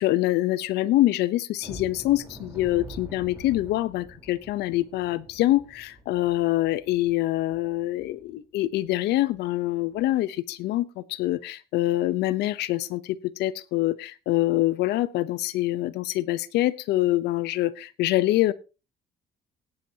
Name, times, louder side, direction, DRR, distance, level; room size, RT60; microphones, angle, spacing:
voice 1, 0.0-18.5, left 16 dB, 80° left, 0.8 m, -25 dB
sound 1, 1.6-8.3 8.7-8.9 9.3-9.4 9.9-10.1, right 1 dB, 15° right, 4.0 m, -46 dB
17.0 x 10.5 x 2.9 m
cardioid pair, 110°, 17 cm